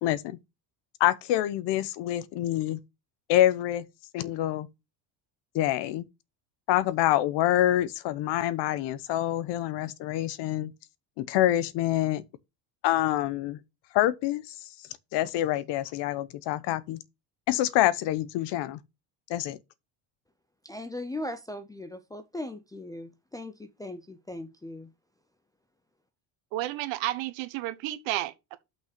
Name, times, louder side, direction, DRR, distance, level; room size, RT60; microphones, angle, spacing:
voice 1, 0.0-0.4 1.0-2.8 3.3-3.9 4.1-4.7 5.5-6.0 6.7-10.7 11.2-12.2 12.8-13.6 13.9-14.4 15.1-17.0 17.5-18.8 19.3-19.6, left 13 dB, 65° left, 0.9 m, -26 dB
voice 2, 20.6-24.9, left 1 dB, 10° left, 0.4 m, -38 dB
voice 3, 26.5-28.6, right 16 dB, 75° right, 1.2 m, -32 dB
5.9 x 5.4 x 5.9 m
cardioid pair, 150°, 46 cm